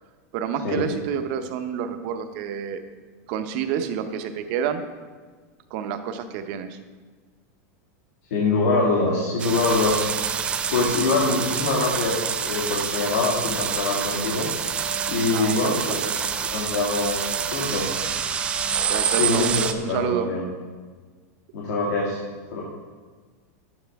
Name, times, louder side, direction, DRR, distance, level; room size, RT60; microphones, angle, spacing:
voice 1, 0.3-2.8 3.3-4.8 5.7-6.8 15.3-16.1 18.9-19.4 19.8-20.3, right 8 dB, 40° right, 8 dB, 0.7 m, -28 dB
voice 2, 8.3-10.1 10.7-14.5 15.1-16.0 16.5-17.9 19.2-20.4 21.5-22.2 22.5-22.6, left 3 dB, 90° left, -4 dB, 2.2 m, -24 dB
sound 1, 9.4-19.7, right 7 dB, 10° right, 0.3 m, -27 dB
10.5 x 9.0 x 3.5 m, 1.5 s
supercardioid pair, 175°, 9 cm